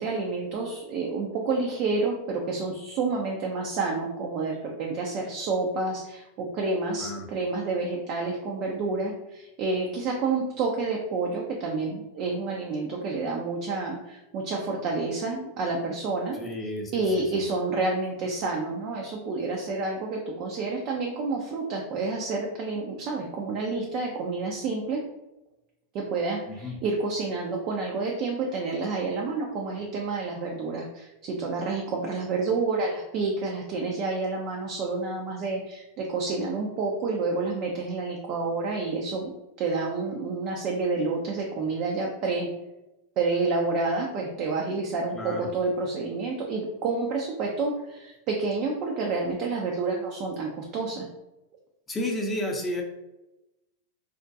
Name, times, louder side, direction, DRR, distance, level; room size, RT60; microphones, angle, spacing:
voice 1, 0.0-16.4 16.9-25.0 25.9-39.3 39.6-42.5 43.2-51.1, right 3 dB, 45° right, 0 dB, 0.4 m, -29 dB
voice 2, 16.3-17.4 26.5-26.8 45.1-45.5 51.9-52.8, left 1 dB, 20° left, 1 dB, 0.6 m, -32 dB
2.3 x 2.1 x 2.6 m, 0.97 s
hypercardioid pair, 110°, 0 cm